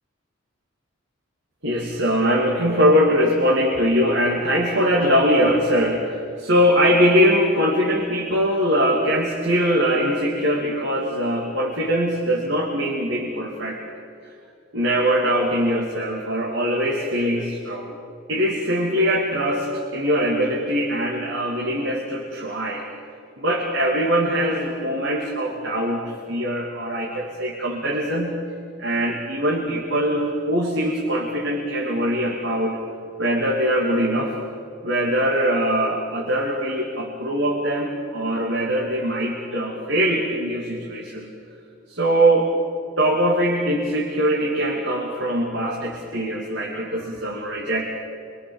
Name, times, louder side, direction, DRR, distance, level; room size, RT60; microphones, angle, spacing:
voice 1, 1.6-13.8 14.7-17.9 18.3-22.8 23.4-28.4 28.8-32.8 33.2-34.4 34.8-41.3 41.9-42.5 43.0-47.8, equal, 65° right, -2 dB, 2.7 m, -22 dB
26.0 x 24.0 x 7.3 m, 2.4 s
head